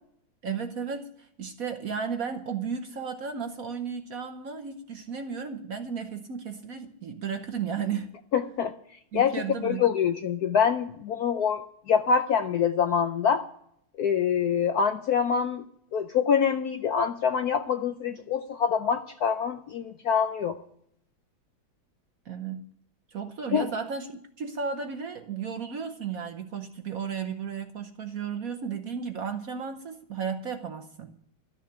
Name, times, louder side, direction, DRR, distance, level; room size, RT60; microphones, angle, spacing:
voice 1, 0.4-8.1 9.1-9.8 22.3-22.6 23.1-31.1, right 6 dB, 55° right, 1.1 m, -34 dB
voice 2, 8.3-8.7 9.1-9.3 9.6-13.4 14.0-15.6 15.9-20.6 23.5-23.7, left 7 dB, 65° left, 0.9 m, -25 dB
13.0 x 6.6 x 9.9 m
omnidirectional pair, 2.2 m